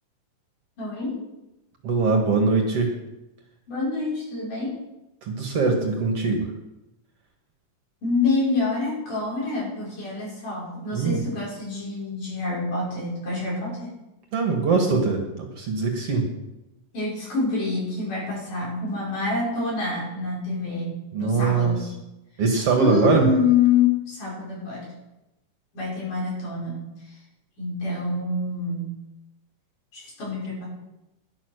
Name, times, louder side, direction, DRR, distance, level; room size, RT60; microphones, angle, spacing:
voice 1, 0.8-1.2 3.7-4.8 8.0-13.9 16.9-21.9 22.8-24.9 25.7-27.2 27.6-29.0 29.9-30.7, left 4 dB, 70° left, -6 dB, 7.2 m, -26 dB
voice 2, 1.8-2.9 5.2-6.5 10.9-11.2 14.3-16.3 21.1-21.7 22.4-23.3, right 4 dB, 50° right, 3 dB, 2.3 m, -22 dB
11.5 x 11.5 x 6.5 m, 0.95 s
omnidirectional pair, 3.8 m